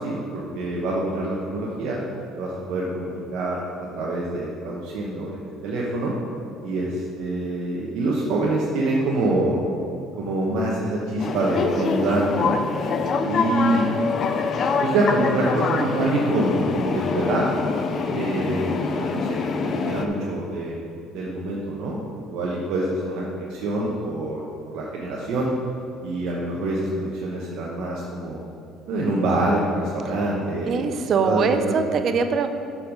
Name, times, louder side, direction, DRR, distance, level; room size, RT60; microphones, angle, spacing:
voice 1, 0.0-2.0 2.4-3.6 3.9-6.1 6.6-9.6 10.2-12.5 13.2-13.9 14.8-17.4 18.1-19.4 19.8-20.8 21.1-24.4 24.7-25.5 26.0-28.4 28.9-30.8 31.2-31.7, right 2 dB, 70° right, -4 dB, 1.1 m, -25 dB
sound 1, 11.2-20.1, left 4 dB, 50° left, 0.6 m, -25 dB
voice 2, 30.7-32.5, right 5 dB, 55° right, 8 dB, 0.6 m, -22 dB
6.9 x 5.7 x 5.2 m, 2.5 s
supercardioid pair, 70°, 0 cm